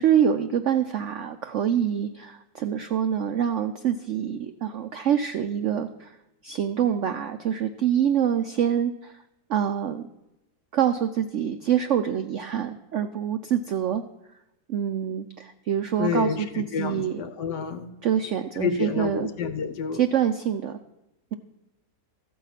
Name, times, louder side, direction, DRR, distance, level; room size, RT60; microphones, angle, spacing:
voice 1, 0.0-6.1 6.4-9.1 9.5-10.1 10.7-14.0 14.7-17.1 18.0-19.3 20.0-20.8, right 9 dB, 80° right, 9 dB, 0.6 m, -25 dB
voice 2, 16.0-17.9 18.5-20.1, left 6 dB, 75° left, 10 dB, 1.5 m, -29 dB
13.5 x 7.9 x 5.7 m, 0.91 s
omnidirectional pair, 1.9 m